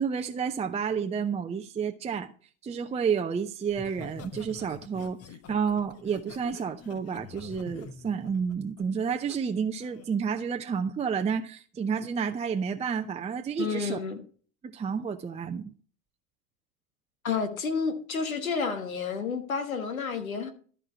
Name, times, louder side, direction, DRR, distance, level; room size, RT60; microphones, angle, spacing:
voice 1, 0.0-2.3 2.6-5.2 5.5-14.0 14.6-15.7, right 6 dB, 15° right, 0.6 m, -30 dB
Laughter, 3.7-9.4 9.8-10.1, left 5 dB, 35° left, 1.2 m, -46 dB
voice 2, 13.6-14.2 17.2-20.5, left 5 dB, 80° left, 1.5 m, -30 dB
13.0 x 4.5 x 6.8 m
figure-of-eight pair, 80°, 41 cm